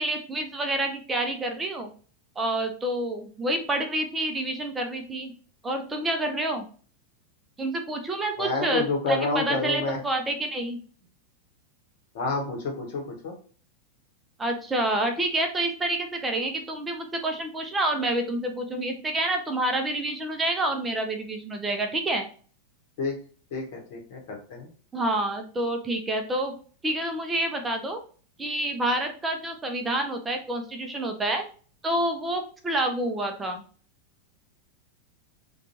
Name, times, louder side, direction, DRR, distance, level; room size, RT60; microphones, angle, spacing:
voice 1, 0.0-1.9 2.4-5.3 5.6-6.7 7.6-10.8 14.4-22.2 24.9-26.5 26.8-28.0 28.4-31.4 31.8-33.6, right 1 dB, 15° right, 5 dB, 0.4 m, -28 dB
voice 2, 8.4-10.0 12.1-13.3 23.0-23.2 23.5-24.7, left 3 dB, 50° left, 1 dB, 0.9 m, -29 dB
2.5 x 2.2 x 2.9 m, 0.41 s
figure-of-eight pair, 90°, 0 cm